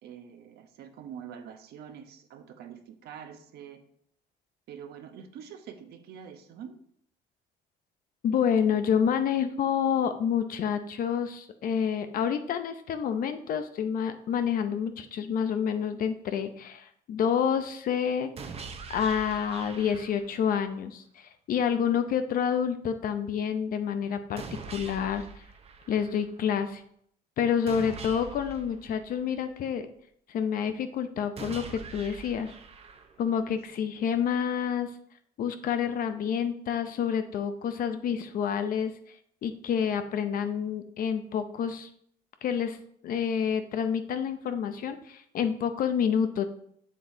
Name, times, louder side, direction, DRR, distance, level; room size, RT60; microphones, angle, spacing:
voice 1, 0.0-3.8 4.7-6.8 8.7-8.8 33.5-33.6 33.9-34.0, right 8 dB, 75° right, 7 dB, 0.8 m, -45 dB
voice 2, 8.2-18.3 18.9-25.2 25.9-26.8 27.4-29.9 30.3-32.5 33.2-34.9 35.4-38.9 39.4-41.9 42.4-42.8 43.0-46.5, left 7 dB, 55° left, 9 dB, 0.6 m, -28 dB
sound 1, 18.4-20.4 24.4-26.4 27.7-29.7 31.4-33.4, right 5 dB, 35° right, 0.8 m, -43 dB
7.4 x 6.8 x 2.7 m, 0.67 s
cardioid pair, 110°, 17 cm